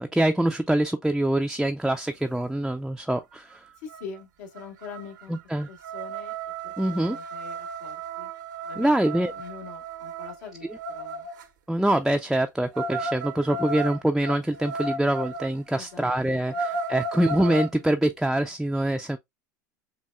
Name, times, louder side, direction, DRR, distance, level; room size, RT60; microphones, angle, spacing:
voice 1, 0.0-3.6 5.3-5.7 6.8-7.2 8.8-9.3 11.7-19.2, right 1 dB, ahead, 0.4 m, -24 dB
sound 1, 3.5-3.6 3.9-4.2 4.5-11.5 12.7-15.6 16.0-16.1 16.4-17.7, right 2 dB, 80° right, 0.7 m, -34 dB
voice 2, 3.8-5.4 5.7-6.4 6.6-8.3 8.6-10.7 10.9-11.3 15.7-16.1, left 6 dB, 75° left, 1.2 m, -43 dB
5.6 x 2.3 x 2.2 m
hypercardioid pair, 85°, 10 cm